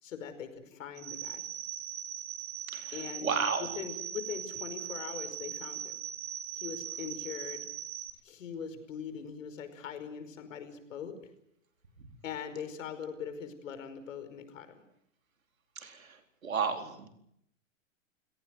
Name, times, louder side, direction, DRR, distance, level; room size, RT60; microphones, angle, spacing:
voice 1, 0.0-1.4 2.9-6.0 6.6-7.7 8.2-11.2 12.2-14.8, left 7 dB, 70° left, 9 dB, 5.2 m, -41 dB
sound 1, 1.0-8.1, right 10 dB, 35° right, 2.0 m, -40 dB
voice 2, 2.7-3.7 15.8-16.1 16.4-17.1, right 5 dB, 85° right, 6 dB, 4.3 m, -32 dB
29.5 x 17.5 x 7.9 m, 0.74 s
hypercardioid pair, 115°, 40 cm